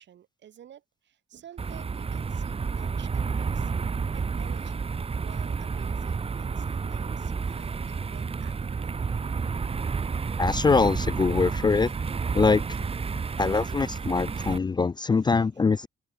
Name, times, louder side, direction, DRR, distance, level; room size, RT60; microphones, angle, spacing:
voice 1, 0.0-3.7 4.1-4.9 5.2-9.0 15.2-15.4, right 10 dB, 65° right, 3.4 m, -51 dB
sound 1, 1.6-14.6, right 5 dB, 30° right, 1.0 m, -30 dB
voice 2, 10.4-11.9 12.3-12.6 13.4-15.9, left 4 dB, 20° left, 0.4 m, -23 dB
cardioid pair, 90°, 20 cm